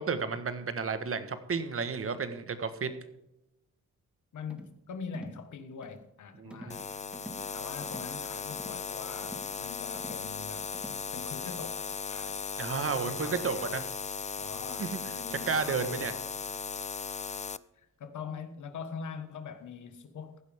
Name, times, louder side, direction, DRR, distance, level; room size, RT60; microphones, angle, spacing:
voice 1, 0.0-2.9 6.4-6.9 12.6-13.8 14.8-15.2 15.5-16.1, right 5 dB, 45° right, 1.5 m, -32 dB
voice 2, 4.3-6.8 7.5-10.7 11.1-12.4 12.8-13.8 14.4-16.2 17.8-20.4, left 6 dB, 75° left, 1.6 m, -43 dB
sound 1, 4.5-4.8 5.1-5.4 5.8-6.1 6.5-6.8 7.1-7.5 7.8-8.1 8.5-8.8 9.2-9.6 9.9-10.3 10.7-11.1, equal, 5° right, 1.8 m, -47 dB
sound 2, 6.7-17.6, left 5 dB, 25° left, 0.4 m, -37 dB
15.5 x 11.5 x 3.6 m
cardioid pair, 110°, 30 cm